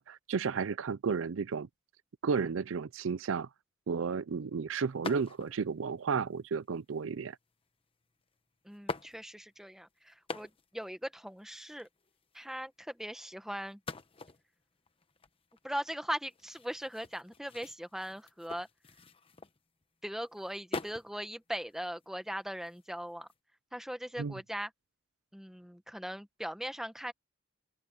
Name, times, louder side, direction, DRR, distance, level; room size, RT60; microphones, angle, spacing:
voice 1, 0.0-1.7 2.2-3.5 3.9-7.4 24.2-24.4, right 5 dB, 75° right, 0.5 m, -33 dB
sound 1, 5.0-5.7 6.5-7.0 8.0-8.1 8.7-9.6 10.1-10.8 11.1-11.2 11.4-12.4 13.7-19.8 20.3-21.1 21.5-23.3, left 3 dB, 25° left, 1.0 m, -44 dB
voice 2, 8.6-11.9 12.3-13.8 15.6-18.7 20.0-23.3 23.7-24.7 25.3-27.1, equal, ahead, 1.1 m, -39 dB
open air
head